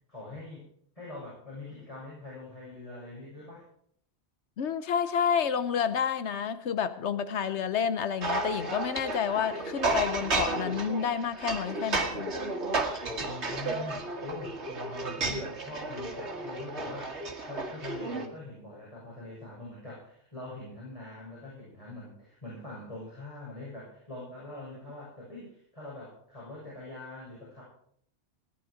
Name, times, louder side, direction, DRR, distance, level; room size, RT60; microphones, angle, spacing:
voice 1, 0.1-0.7 1.0-3.6 13.2-27.6, left 2 dB, 30° left, -7 dB, 7.2 m, -43 dB
voice 2, 4.6-12.3, left 7 dB, 85° left, 12 dB, 1.1 m, -29 dB
sound 1, 8.2-18.3, right 2 dB, 80° right, 2.1 m, -33 dB
18.5 x 11.0 x 5.0 m, 0.63 s
omnidirectional pair, 1.1 m